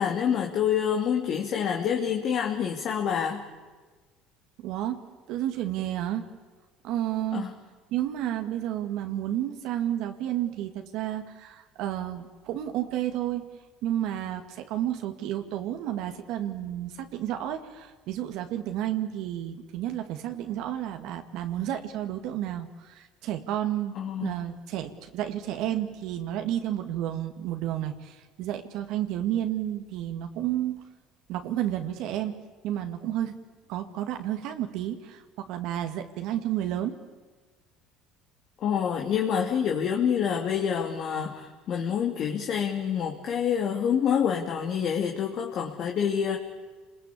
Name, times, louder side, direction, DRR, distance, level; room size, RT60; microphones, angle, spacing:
voice 1, 0.0-3.4 7.3-7.5 24.0-24.4 38.6-46.4, left 8 dB, 50° left, 1 dB, 2.7 m, -27 dB
voice 2, 4.6-5.0 5.3-6.2 6.8-7.5 7.9-13.4 13.8-30.8 31.3-33.4 33.7-37.0, right 12 dB, 70° right, 6 dB, 2.0 m, -31 dB
29.0 x 21.0 x 8.6 m, 1.3 s
cardioid pair, 115°, 0 cm